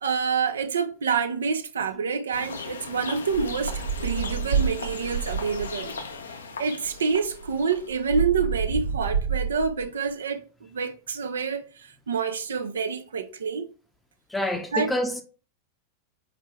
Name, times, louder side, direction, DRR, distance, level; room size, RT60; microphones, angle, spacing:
voice 1, 0.0-5.9 6.6-10.4 10.7-13.7 14.7-14.9, right 5 dB, 70° right, 0.5 m, -27 dB
sound 1, 2.3-8.2, left 4 dB, 70° left, 0.7 m, -38 dB
sound 2, 3.3-5.9 6.8-6.9 7.2-9.8, right 6 dB, 90° right, 1.3 m, -29 dB
voice 2, 14.3-15.2, left 1 dB, 5° left, 0.7 m, -27 dB
4.3 x 4.0 x 3.1 m
figure-of-eight pair, 90°, 0 cm